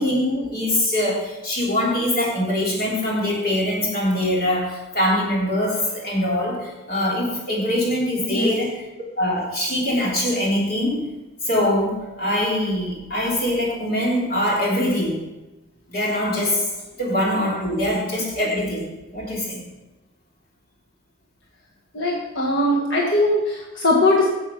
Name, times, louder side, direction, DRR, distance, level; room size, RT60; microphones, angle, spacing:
voice 1, 0.0-8.7 9.2-11.0 11.4-15.2 15.9-16.7 17.0-19.6, left 1 dB, 50° left, -4 dB, 3.2 m, -23 dB
voice 2, 21.9-24.3, left 1 dB, 75° left, -2 dB, 1.4 m, -20 dB
9.0 x 7.5 x 5.9 m, 1.1 s
head